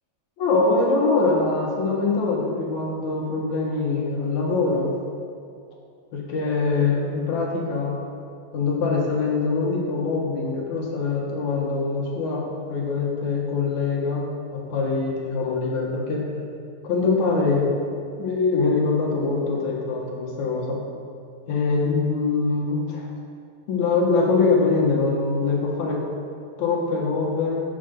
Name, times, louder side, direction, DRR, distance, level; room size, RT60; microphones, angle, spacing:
voice 1, 0.4-4.9 6.1-7.9 8.5-16.2 16.8-17.7 18.2-20.8 21.5-23.1 23.7-26.0 26.6-27.6, left 4 dB, 60° left, -1 dB, 2.4 m, -23 dB
11.0 x 8.0 x 5.3 m, 2.3 s
omnidirectional pair, 4.5 m